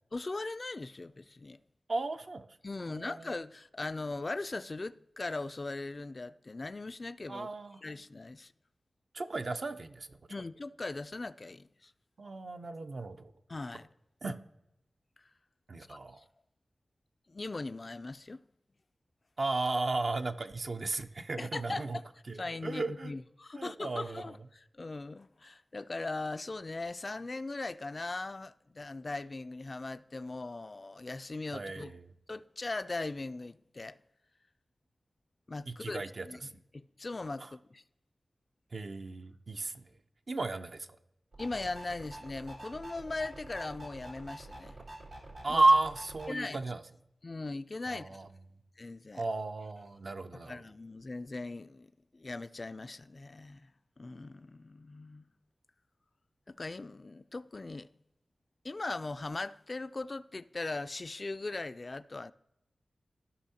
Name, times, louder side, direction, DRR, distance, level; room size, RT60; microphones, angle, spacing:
voice 1, 0.1-1.6 2.6-7.5 7.8-8.5 10.3-11.9 13.5-13.9 15.9-16.2 17.3-18.4 21.4-22.0 22.3-24.4 24.7-31.9 32.3-34.0 35.5-36.0 36.3-36.4 36.7-37.8 41.4-44.8 45.5-45.6 46.3-46.6 47.2-48.2 48.8-49.2 50.5-53.7 54.0-55.2 56.5-57.9 58.6-62.3, left 3 dB, 50° left, 0.3 m, -39 dB
voice 2, 1.9-2.5 2.9-3.3 7.3-7.8 9.1-10.2 12.2-13.3 14.2-14.4 15.7-16.2 19.4-22.0 22.3-23.1 23.6-24.4 31.5-32.1 35.7-36.5 37.4-37.5 38.7-39.9 40.3-40.9 45.4-46.8 47.9-48.3 49.1-50.6, right 2 dB, 65° right, 0.6 m, -33 dB
sound 1, 41.3-46.3, right 1 dB, 90° right, 2.1 m, -47 dB
15.0 x 5.6 x 2.8 m
cardioid pair, 40°, 0 cm